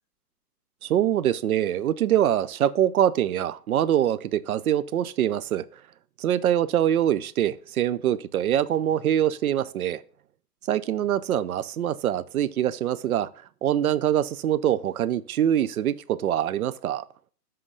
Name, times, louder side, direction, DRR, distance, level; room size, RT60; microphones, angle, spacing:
voice 1, 0.8-5.6 6.2-10.0 10.7-13.3 13.6-17.0, right 11 dB, 60° right, 0.6 m, -24 dB
7.7 x 3.7 x 6.6 m
hypercardioid pair, 160°, 49 cm